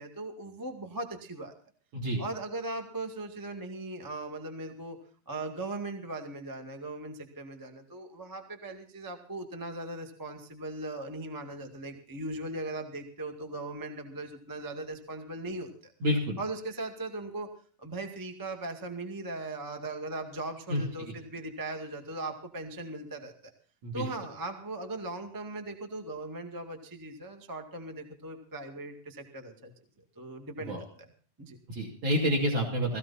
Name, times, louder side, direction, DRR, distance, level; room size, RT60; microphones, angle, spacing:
voice 1, 0.0-1.5 2.2-5.0 5.2-15.9 16.4-17.5 17.8-23.3 23.9-29.7 30.1-31.1 31.4-31.6, right 2 dB, 30° right, 5 dB, 0.3 m, -39 dB
voice 2, 16.0-16.4 20.7-20.8 23.8-24.1 30.7-30.8 31.7-33.0, equal, 50° right, -1 dB, 4.0 m, -28 dB
19.0 x 15.5 x 4.2 m, 0.43 s
omnidirectional pair, 4.5 m